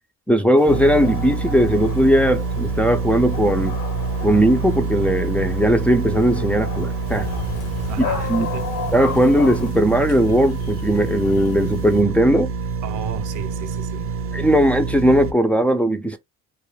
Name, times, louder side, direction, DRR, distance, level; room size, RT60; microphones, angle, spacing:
voice 1, 0.3-3.8 4.2-7.3 8.3-8.5 8.9-12.5 14.3-16.2, equal, 5° left, 0.4 m, -18 dB
Dog, 0.6-9.7, left 6 dB, 85° left, 1.2 m, -34 dB
sound 1, 0.7-15.3, right 5 dB, 45° right, 0.6 m, -26 dB
sound 2, 7.0-12.0, left 6 dB, 55° left, 0.7 m, -38 dB
voice 2, 7.9-8.7 12.8-14.1, right 8 dB, 85° right, 0.6 m, -33 dB
2.3 x 2.0 x 3.2 m
cardioid pair, 90°, 30 cm